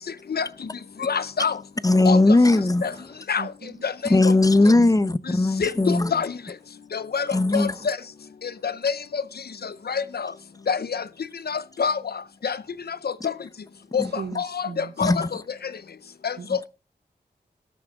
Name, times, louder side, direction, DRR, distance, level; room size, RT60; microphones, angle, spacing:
voice 1, 1.0-1.5 2.1-2.2 2.8-2.9 3.3-3.4 3.8-3.9 5.6-6.3 6.9-7.2 7.5-8.0 8.6-8.9 9.9-10.3 10.7-11.0 11.5-12.0 12.4-12.6 13.2-13.3 13.9-14.0 14.4-14.5 14.8-15.2 16.2-16.3, left 6 dB, 65° left, 0.7 m, -25 dB
voice 2, 1.8-2.8 4.1-6.1 7.3-7.8 14.0-14.1 15.0-15.3, left 2 dB, 20° left, 0.7 m, -18 dB
voice 3, 3.4-3.8 4.7-4.9 14.1-14.9 16.4-16.7, right 5 dB, 70° right, 0.9 m, -37 dB
18.5 x 12.5 x 2.4 m
cardioid pair, 40°, 17 cm